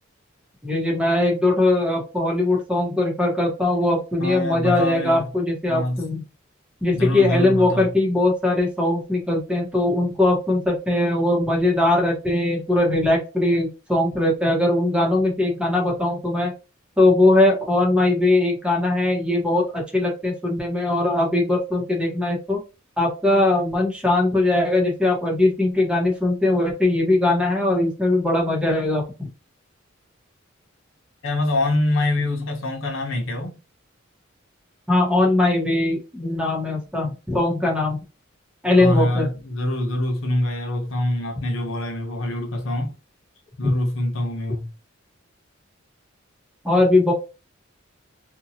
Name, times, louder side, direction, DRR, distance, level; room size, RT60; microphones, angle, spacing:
voice 1, 0.6-6.2 6.8-16.5 17.0-22.6 23.0-29.3 34.9-38.0 38.6-39.3 43.6-43.7 46.6-47.1, left 2 dB, 5° right, 1.0 m, -20 dB
voice 2, 4.2-5.3 5.7-6.2 6.9-7.9 31.2-33.5 38.8-42.9 43.6-44.7, left 1 dB, 75° left, 0.8 m, -25 dB
2.7 x 2.3 x 2.7 m
head